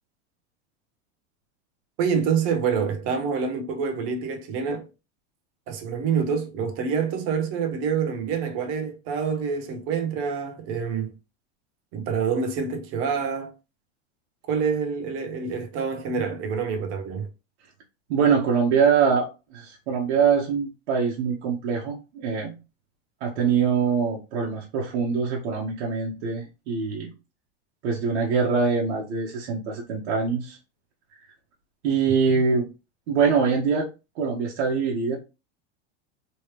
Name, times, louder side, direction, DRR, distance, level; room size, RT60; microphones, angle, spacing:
voice 1, 2.0-4.9 5.7-11.1 11.9-13.5 14.5-17.3, right 6 dB, 40° right, 0.8 m, -27 dB
voice 2, 18.1-22.5 23.2-27.1 27.8-30.6 31.8-32.7 33.1-33.9 34.1-35.2, right 6 dB, 70° right, 1.2 m, -23 dB
3.2 x 3.1 x 3.2 m
supercardioid pair, 155°, 34 cm